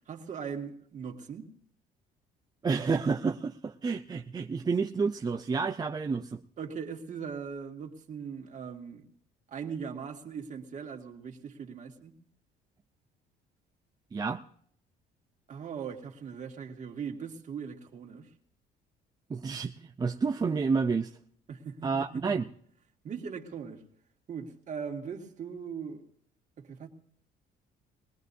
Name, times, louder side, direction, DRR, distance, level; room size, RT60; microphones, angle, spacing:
voice 1, 0.0-1.5 6.6-9.1 9.5-12.1 15.5-18.3 21.5-22.4 23.0-23.8 24.3-26.1 26.6-26.9, right 6 dB, 45° right, 2.3 m, -40 dB
voice 2, 2.6-6.4 14.1-14.4 19.3-21.1 21.8-22.5, right 5 dB, 25° right, 0.6 m, -29 dB
22.0 x 18.0 x 2.7 m
cardioid pair, 110°, 17 cm